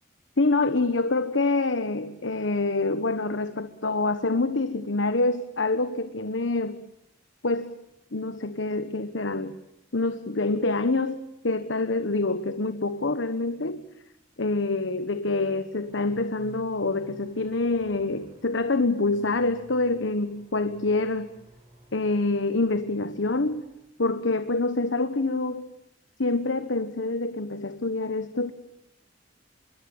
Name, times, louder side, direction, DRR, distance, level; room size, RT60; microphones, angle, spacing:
voice 1, 0.4-6.8 7.4-7.7 8.1-9.6 9.9-13.8 14.4-21.3 21.9-23.6 24.0-25.7 26.2-28.5, left 3 dB, 70° left, 11 dB, 1.2 m, -26 dB
sound 1, 15.8-23.7, equal, 25° right, 6.4 m, -54 dB
25.5 x 22.5 x 8.8 m, 0.84 s
head